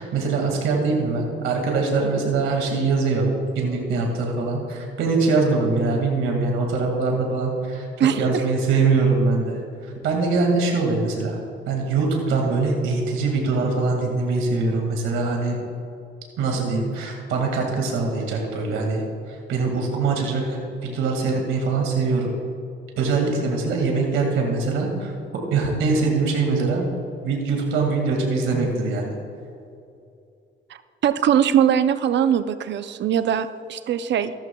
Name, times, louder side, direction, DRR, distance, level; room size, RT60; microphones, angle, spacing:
voice 1, 0.0-3.3 3.6-11.4 11.7-15.6 16.4-19.0 19.5-22.3 23.0-25.1 25.5-26.9 27.2-29.1, right 3 dB, 90° right, 1 dB, 2.1 m, -23 dB
voice 2, 8.0-8.4 25.8-26.0 28.5-28.7 31.0-34.3, right 9 dB, 65° right, 12 dB, 0.6 m, -21 dB
15.0 x 13.0 x 2.3 m, 2.6 s
cardioid pair, 90°, 20 cm